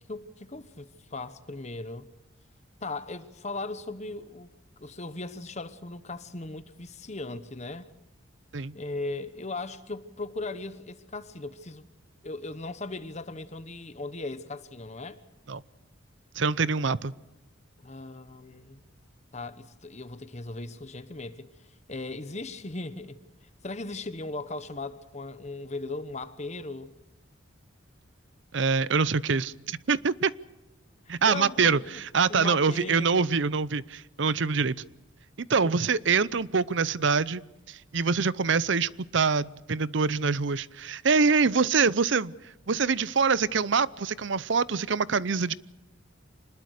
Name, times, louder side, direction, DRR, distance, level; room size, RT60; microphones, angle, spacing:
voice 1, 0.0-2.1 2.8-4.5 4.8-7.9 8.7-11.9 12.2-15.2 17.8-18.8 19.3-23.2 23.6-26.9 31.1-32.0 32.3-33.2 35.6-35.7, left 2 dB, 35° left, 1.1 m, -38 dB
voice 2, 16.4-17.1 28.5-30.3 31.1-34.7 35.4-37.4 37.7-42.3 42.7-45.5, right 5 dB, 60° right, 0.7 m, -25 dB
25.5 x 20.5 x 6.5 m
head